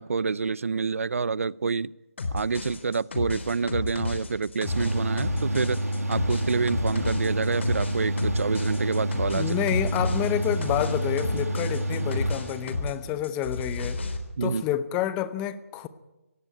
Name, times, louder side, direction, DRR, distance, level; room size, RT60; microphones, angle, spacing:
voice 1, 0.0-1.9 2.3-5.8 6.1-9.5 14.4-14.6, right 5 dB, 65° right, 0.6 m, -27 dB
sound 1, 2.2-13.0 13.2-14.2, left 3 dB, 50° left, 3.6 m, -32 dB
Mechanical fan, 4.7-13.1, right 1 dB, 90° right, 7.1 m, -29 dB
voice 2, 9.3-14.0 14.4-15.9, left 11 dB, 10° left, 0.7 m, -29 dB
17.5 x 17.0 x 9.2 m
hypercardioid pair, 165°, 8 cm